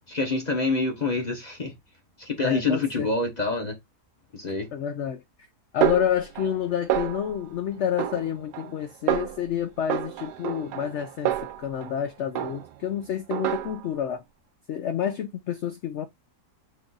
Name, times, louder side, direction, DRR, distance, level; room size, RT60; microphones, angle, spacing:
voice 1, 0.1-1.7 2.2-3.8 4.3-4.7, left 3 dB, 35° left, 0.7 m, -26 dB
voice 2, 2.4-3.1 4.7-5.2 5.7-14.2 14.7-16.1, left 9 dB, 75° left, 0.6 m, -29 dB
Snare drum, 5.8-6.6 6.9-7.5 8.0-8.8 9.1-9.5 9.9-12.0 12.3-12.9 13.3-14.0, right 12 dB, 85° right, 1.2 m, -29 dB
5.3 x 2.4 x 3.8 m
omnidirectional pair, 1.7 m